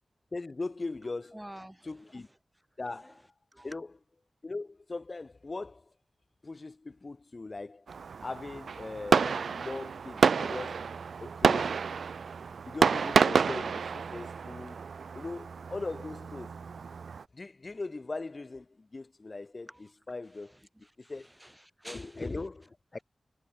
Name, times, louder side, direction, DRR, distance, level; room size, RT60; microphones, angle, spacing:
voice 1, 0.3-1.4 1.8-2.3 2.8-3.3 3.6-3.9 4.4-5.9 6.4-7.9 8.2-10.9 11.2-11.7 12.7-14.8 15.1-16.5 17.3-19.7 20.1-20.5 21.1-21.3 21.8-23.0, left 3 dB, 40° left, 0.5 m, -39 dB
voice 2, 1.0-2.4 2.9-3.2 3.5-3.8 19.7-19.9 20.3-22.4, right 1 dB, 10° right, 7.7 m, -51 dB
Fireworks, 7.9-17.2, right 6 dB, 90° right, 0.4 m, -29 dB
sound 1, 10.4-17.2, right 5 dB, 70° right, 6.3 m, -49 dB
wide cardioid pair, 75°, 0 cm